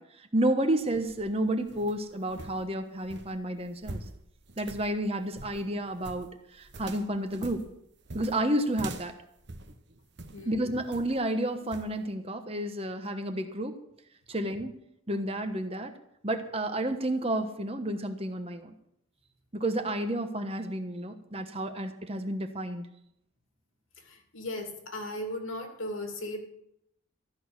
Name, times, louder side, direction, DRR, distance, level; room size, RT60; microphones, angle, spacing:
voice 1, 0.0-4.0 4.6-7.6 8.1-9.1 10.4-13.8 14.3-14.7 15.1-15.9 16.2-18.7 19.5-22.9, right 1 dB, 30° right, 6 dB, 1.1 m, -31 dB
sound 1, 0.8-10.5 10.9-11.3 11.7-11.9, right 2 dB, 55° right, 1.0 m, -45 dB
voice 2, 10.3-10.6 24.1-26.4, left 1 dB, 80° left, 4 dB, 2.6 m, -37 dB
13.5 x 6.3 x 9.7 m, 0.76 s
head